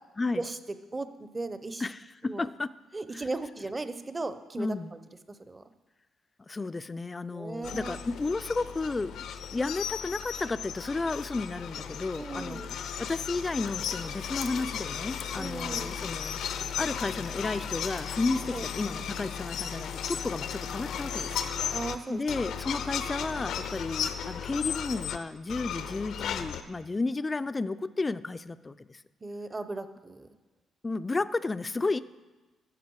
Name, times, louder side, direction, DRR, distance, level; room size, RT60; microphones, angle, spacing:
voice 1, 0.9-1.8 2.2-2.5 2.9-5.0 5.3-5.6 7.3-8.0 12.2-12.7 15.4-15.9 18.5-18.7 21.7-22.4 29.2-30.3, right 3 dB, 25° right, 11 dB, 0.7 m, -37 dB
voice 2, 1.8-2.7 3.1-3.2 4.6-4.9 6.4-9.2 9.5-21.4 22.1-29.0 30.8-32.0, left 3 dB, 25° left, 14 dB, 0.4 m, -32 dB
sound 1, 7.6-22.0 22.3-25.2 25.5-26.6, left 8 dB, 75° left, 0.6 m, -35 dB
12.5 x 7.4 x 4.7 m, 1.2 s
cardioid pair, 90°, 0 cm